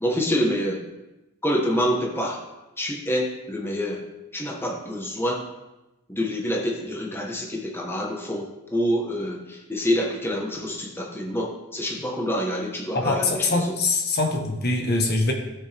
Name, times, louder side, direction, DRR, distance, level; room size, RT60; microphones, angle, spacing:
voice 1, 0.0-0.8 1.4-2.4 2.8-4.0 4.3-5.5 6.1-13.6, equal, 10° left, -1 dB, 1.3 m, -27 dB
voice 2, 12.9-15.3, left 3 dB, 50° left, 2 dB, 1.3 m, -23 dB
16.5 x 6.3 x 3.5 m, 1.0 s
head